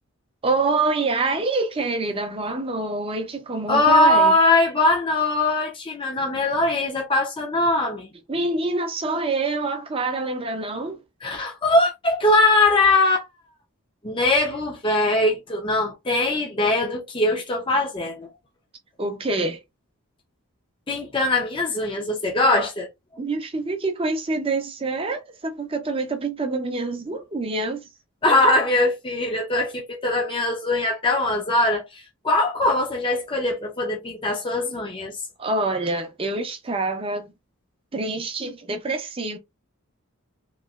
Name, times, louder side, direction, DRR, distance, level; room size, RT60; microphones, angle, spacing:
voice 1, 0.4-4.3 8.3-11.0 19.0-19.6 23.2-27.9 35.4-37.3 37.9-39.4, right 3 dB, 25° right, 0.6 m, -26 dB
voice 2, 3.7-8.1 11.2-13.2 14.0-18.3 20.9-22.9 28.2-35.2, left 2 dB, 20° left, 0.6 m, -21 dB
3.0 x 2.9 x 2.3 m
head